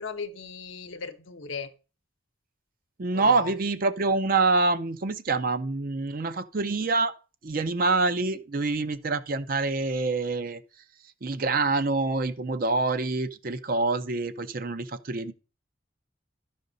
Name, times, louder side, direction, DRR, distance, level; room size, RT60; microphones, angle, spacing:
voice 1, 0.0-1.7 3.1-3.5, left 5 dB, 75° left, 0.8 m, -37 dB
voice 2, 3.0-7.1 7.4-10.6 11.2-15.3, right 3 dB, 45° right, 0.5 m, -26 dB
12.0 x 5.1 x 3.9 m
head